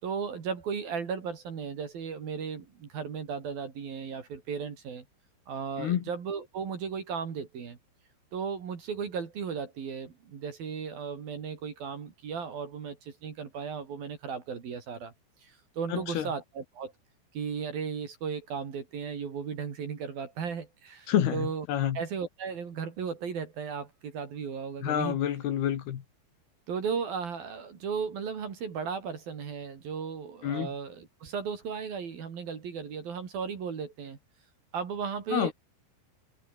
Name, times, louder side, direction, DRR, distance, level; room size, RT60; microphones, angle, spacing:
voice 1, 0.0-5.0 5.5-7.8 8.3-15.1 15.4-16.9 17.3-21.7 21.9-25.2 26.7-34.2 34.7-35.5, right 6 dB, 50° right, 4.7 m, -35 dB
voice 2, 15.9-16.3 21.1-22.0 24.8-26.0 30.4-30.7 35.3-35.5, left 10 dB, 60° left, 3.7 m, -28 dB
omnidirectional pair, 5.5 m